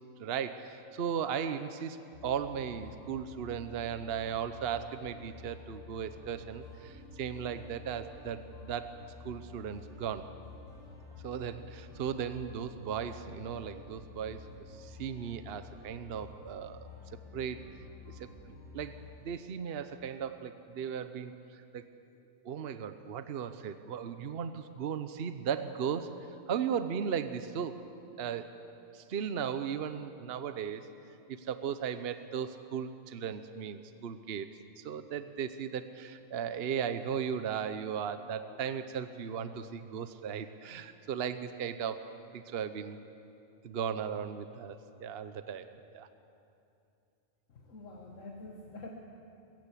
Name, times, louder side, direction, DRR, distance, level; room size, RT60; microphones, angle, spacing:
voice 1, 0.2-10.3 11.2-14.5 14.7-16.9 17.3-17.6 18.1-18.3 18.7-21.8 22.4-26.1 26.5-27.8 28.2-28.6 28.9-30.9 31.3-34.5 34.8-43.0 43.6-45.7 45.9-46.1, right 7 dB, 55° right, 10 dB, 0.9 m, -36 dB
sound 1, 2.1-19.1, left 4 dB, 80° right, 7.6 m, -50 dB
voice 2, 47.5-48.9, left 2 dB, 90° left, 0 dB, 1.8 m, -46 dB
22.0 x 15.0 x 8.4 m, 2.6 s
omnidirectional pair, 1.3 m